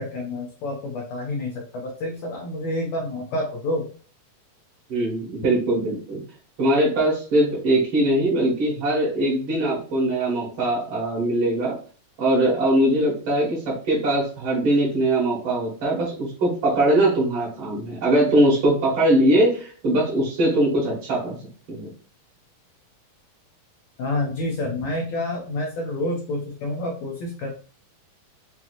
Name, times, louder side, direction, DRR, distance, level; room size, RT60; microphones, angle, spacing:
voice 1, 0.0-3.9 24.0-27.5, left 1 dB, 85° left, 0 dB, 1.5 m, -28 dB
voice 2, 4.9-6.2 6.6-11.7 12.2-21.4 21.7-21.9, right 1 dB, 50° right, -6 dB, 1.6 m, -21 dB
6.0 x 2.8 x 2.4 m, 0.41 s
omnidirectional pair, 4.0 m